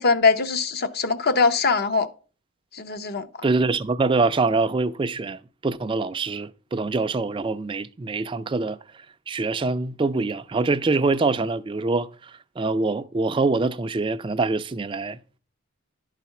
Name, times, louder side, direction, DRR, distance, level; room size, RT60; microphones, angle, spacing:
voice 1, 0.0-2.1 2.7-3.5, left 4 dB, 45° left, 0.7 m, -22 dB
voice 2, 3.4-15.2, right 3 dB, 25° right, 0.3 m, -25 dB
11.0 x 4.2 x 5.7 m
head